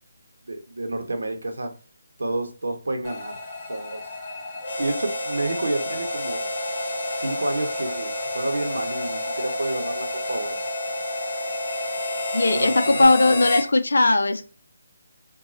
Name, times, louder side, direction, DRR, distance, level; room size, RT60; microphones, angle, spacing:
voice 1, 0.5-1.7 2.2-3.4 3.7-4.0 4.8-6.5 7.2-10.6 12.5-13.4, right 2 dB, 80° right, 0.7 m, -29 dB
sound 1, 3.0-13.0, left 2 dB, 20° left, 0.7 m, -36 dB
Harmonica, 4.6-13.7, left 1 dB, 60° left, 0.9 m, -30 dB
voice 2, 12.3-14.4, left 2 dB, 80° left, 0.4 m, -18 dB
3.0 x 2.2 x 2.5 m
figure-of-eight pair, 160°, 0 cm